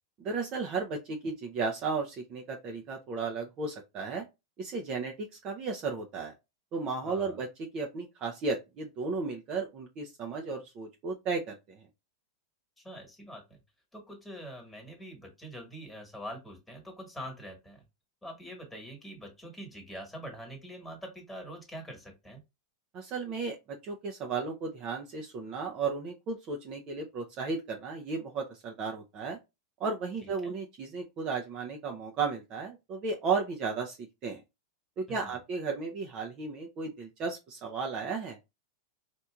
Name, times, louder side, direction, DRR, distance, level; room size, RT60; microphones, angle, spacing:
voice 1, 0.2-4.3 4.6-6.3 6.7-7.5 7.7-11.8 22.9-29.4 29.8-34.4 35.0-38.4, right 4 dB, 35° right, 0.6 m, -34 dB
voice 2, 7.0-7.4 12.8-13.6 13.9-17.8 18.2-22.4 30.2-30.5 35.1-35.3, equal, 5° left, 1.5 m, -44 dB
4.4 x 2.5 x 2.3 m
hypercardioid pair, 130°, 2 cm